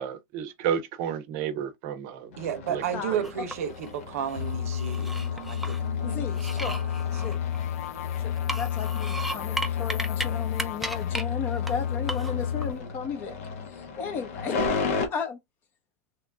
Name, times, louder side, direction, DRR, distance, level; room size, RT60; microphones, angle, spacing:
voice 1, 0.0-2.3 2.7-2.8 3.1-3.2, right 8 dB, 40° right, 0.7 m, -31 dB
sound 1, 2.3-15.1, left 4 dB, 70° left, 0.9 m, -37 dB
voice 2, 2.4-7.2, right 8 dB, 80° right, 0.7 m, -34 dB
sound 2, 3.2-3.9 4.3-5.8 6.3-8.0 8.4-10.3 10.6-11.2 11.7-11.8 12.1-12.7, right 1 dB, ahead, 0.3 m, -35 dB
sound 3, 4.3-12.7, left 9 dB, 90° left, 0.4 m, -30 dB
voice 3, 6.0-6.8 7.2-7.4 8.2-13.4 13.7-15.4, left 6 dB, 30° left, 0.7 m, -35 dB
3.0 x 2.4 x 3.4 m
supercardioid pair, 165°, 8 cm